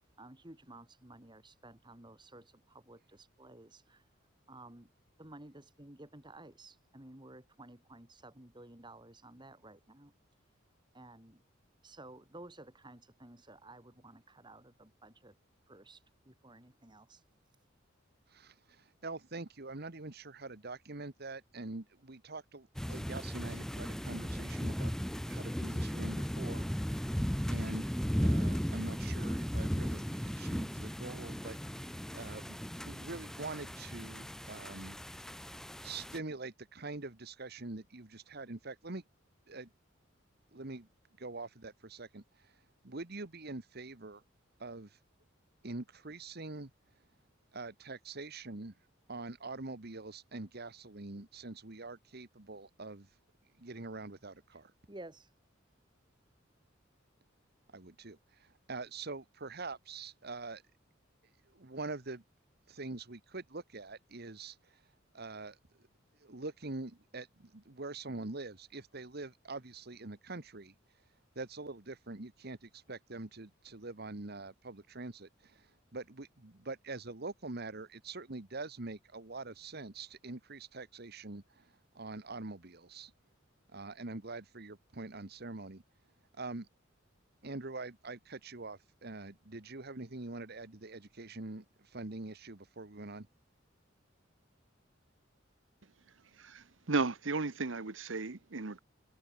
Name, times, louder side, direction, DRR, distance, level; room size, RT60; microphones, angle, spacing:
voice 1, 0.2-4.0 4.5-4.9 5.2-10.1 10.9-11.4 11.8-15.4 15.7-17.2 54.5-54.6 54.9-55.3, right 2 dB, 25° right, 2.8 m, -54 dB
voice 2, 18.3-24.9 25.2-27.0 27.5-27.9 28.2-31.6 32.1-35.0 35.8-39.0 39.5-39.7 40.5-40.9 41.2-42.6 42.8-44.2 44.6-45.0 45.6-46.7 47.5-48.7 49.1-53.1 53.6-54.7 57.7-60.6 61.5-62.2 62.7-64.8 65.1-65.6 66.2-70.7 71.3-83.1 83.7-85.8 86.4-86.7 87.4-93.3, right 3 dB, 55° right, 1.5 m, -44 dB
sound 1, 22.7-36.2, equal, 5° left, 0.7 m, -36 dB
voice 3, 96.3-98.8, right 3 dB, 70° right, 1.1 m, -35 dB
head